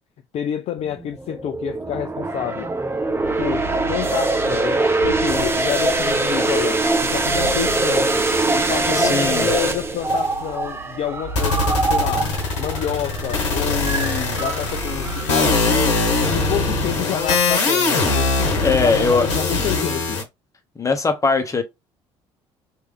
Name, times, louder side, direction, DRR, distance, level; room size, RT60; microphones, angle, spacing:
voice 1, 0.3-2.7 3.4-8.3 8.5-15.9 16.3-20.2, left 10 dB, 45° left, 0.4 m, -28 dB
sound 1, 1.0-15.6, right 2 dB, 15° right, 0.7 m, -23 dB
sound 2, 3.0-17.5, right 1 dB, 75° right, 0.8 m, -35 dB
voice 2, 8.9-9.5 18.6-19.3 20.8-21.6, left 4 dB, 20° left, 0.9 m, -20 dB
Retro Synthetic Lo-Fi Percussive Sounds, 10.1-10.3 11.3-20.2, left 3 dB, 75° left, 0.9 m, -22 dB
3.2 x 2.5 x 3.3 m
figure-of-eight pair, 55°, 15 cm